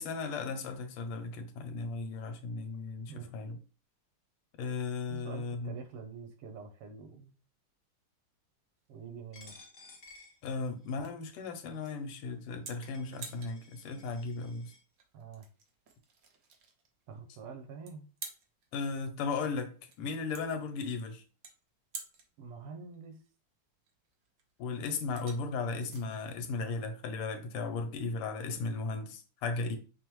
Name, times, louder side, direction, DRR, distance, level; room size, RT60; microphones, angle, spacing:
voice 1, 0.0-3.6 4.6-5.7 10.4-14.7 18.7-21.2 24.6-29.8, left 4 dB, 90° left, 1.6 m, -36 dB
voice 2, 5.1-7.3 8.9-9.6 15.1-15.5 17.1-18.1 22.4-23.2, right 5 dB, 90° right, 1.7 m, -46 dB
sound 1, 8.8-27.6, right 5 dB, 65° right, 0.8 m, -52 dB
Coin (dropping), 9.3-11.1 11.7-11.9 12.5-12.6 12.8-14.8, left 3 dB, 40° left, 0.7 m, -56 dB
6.0 x 2.0 x 3.0 m
omnidirectional pair, 2.4 m